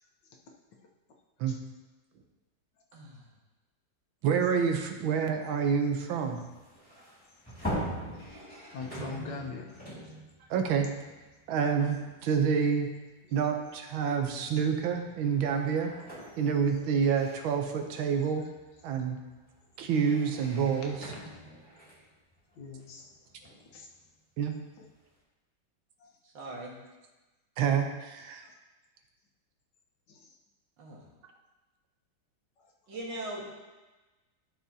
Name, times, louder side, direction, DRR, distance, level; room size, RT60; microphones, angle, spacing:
voice 1, 2.9-3.2 26.2-26.8 30.8-31.0 32.9-33.5, right 1 dB, 70° right, -3 dB, 2.2 m, -40 dB
voice 2, 4.2-6.4 10.5-10.9 11.5-12.9 13.3-15.9 16.4-18.4 18.8-19.2 19.8-21.1 24.4-24.5 27.6-28.4, right 6 dB, 90° right, 4 dB, 1.6 m, -28 dB
sound 1, 5.6-11.9 12.3-12.5 13.6-13.8 14.2-24.0, equal, 5° left, 2.1 m, -42 dB
voice 3, 8.7-10.1 20.8-20.9 22.5-23.1 23.7-23.9 24.8-24.9 26.0-26.2 28.4-28.5 30.1-30.3 32.6-32.7, left 4 dB, 70° left, 1 dB, 1.6 m, -43 dB
12.5 x 6.0 x 2.8 m, 1.2 s
omnidirectional pair, 2.1 m